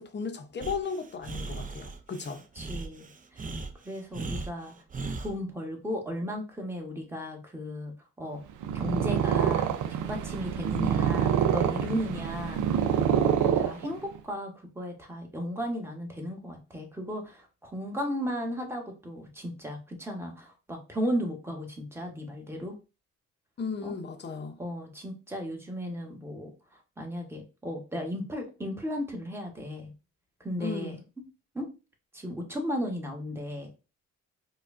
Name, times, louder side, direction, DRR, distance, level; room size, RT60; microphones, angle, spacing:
voice 1, 0.0-2.4 10.8-10.9 23.6-24.6 30.6-31.0, left 5 dB, 35° left, 0.7 m, -35 dB
Breathing, 0.6-5.3, right 3 dB, 25° right, 0.5 m, -38 dB
voice 2, 2.6-3.4 3.8-4.7 5.2-8.4 8.7-12.9 13.2-22.7 23.8-24.0 24.6-26.5 27.0-29.9 30.4-30.9 31.5-31.7 32.1-33.7, equal, 10° right, 1.1 m, -35 dB
Purr, 8.5-14.2, right 8 dB, 80° right, 0.5 m, -26 dB
4.7 x 2.3 x 2.5 m
cardioid pair, 90°, 30 cm